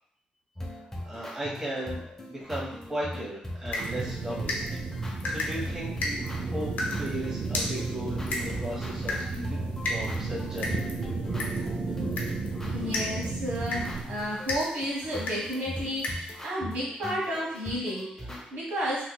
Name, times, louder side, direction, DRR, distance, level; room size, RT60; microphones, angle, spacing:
sound 1, 0.6-18.4, left 1 dB, 15° left, 0.7 m, -40 dB
voice 1, 0.7-2.0 2.3-4.7 5.2-6.7 7.0-10.9, equal, 20° right, -6 dB, 1.2 m, -36 dB
sound 2, 3.7-16.4, left 2 dB, 70° left, 0.8 m, -36 dB
sound 3, 3.8-14.0, right 4 dB, 50° right, 0.4 m, -33 dB
voice 2, 12.6-19.0, equal, 85° right, -6 dB, 1.2 m, -32 dB
3.6 x 3.0 x 2.2 m, 0.72 s
cardioid pair, 80°, 3 cm